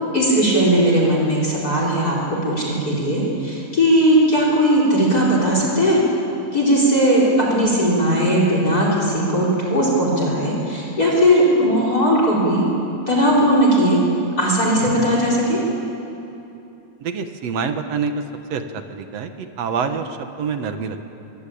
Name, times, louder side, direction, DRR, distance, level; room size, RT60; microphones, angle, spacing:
voice 1, 0.1-6.0 6.5-12.6 13.1-14.0 14.4-15.6, equal, 30° left, -3 dB, 5.0 m, -18 dB
voice 2, 17.0-18.1 18.5-21.1, right 6 dB, 65° right, 7 dB, 2.2 m, -26 dB
24.0 x 23.0 x 8.6 m, 2.8 s
omnidirectional pair, 3.4 m